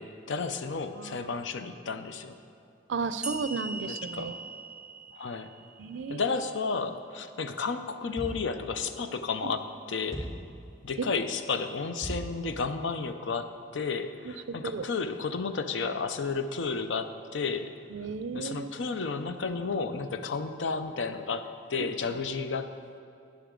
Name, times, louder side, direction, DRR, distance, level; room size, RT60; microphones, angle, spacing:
voice 1, 0.0-2.4 3.9-4.4 5.2-5.5 6.1-10.3 10.8-17.7 18.3-23.0, left 4 dB, 85° left, 9 dB, 0.6 m, -32 dB
voice 2, 2.9-4.4 5.8-6.3 9.4-9.5 11.1-11.2 14.6-14.8 17.9-18.7 21.8-21.9, right 4 dB, 80° right, 12 dB, 0.4 m, -34 dB
sound 1, 3.2-6.6, right 2 dB, 5° right, 0.5 m, -41 dB
sound 2, 8.2-8.6 10.1-10.5 12.0-12.4, right 1 dB, 30° left, 2.4 m, -37 dB
10.5 x 10.0 x 3.8 m, 2.5 s
head